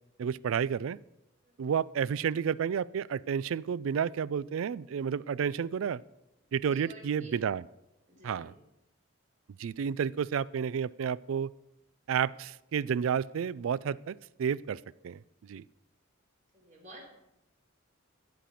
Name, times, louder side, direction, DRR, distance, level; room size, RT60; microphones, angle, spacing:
voice 1, 0.2-1.0 1.6-6.0 6.5-7.6 8.2-8.5 9.6-11.5 12.1-15.2 15.5-15.6, right 7 dB, 70° right, 21 dB, 0.3 m, -31 dB
voice 2, 1.4-1.8 6.4-7.4 8.1-8.6 16.5-17.1, right 1 dB, 35° right, -2 dB, 3.6 m, -52 dB
15.0 x 5.9 x 7.0 m, 0.91 s
head